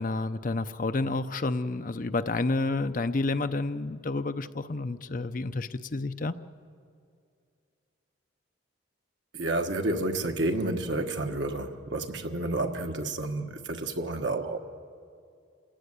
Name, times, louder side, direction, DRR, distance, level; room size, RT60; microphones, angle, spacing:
voice 1, 0.0-6.3, left 3 dB, 45° left, 0.6 m, -30 dB
voice 2, 9.3-14.6, right 2 dB, 70° right, 1.4 m, -30 dB
27.5 x 16.5 x 9.5 m
head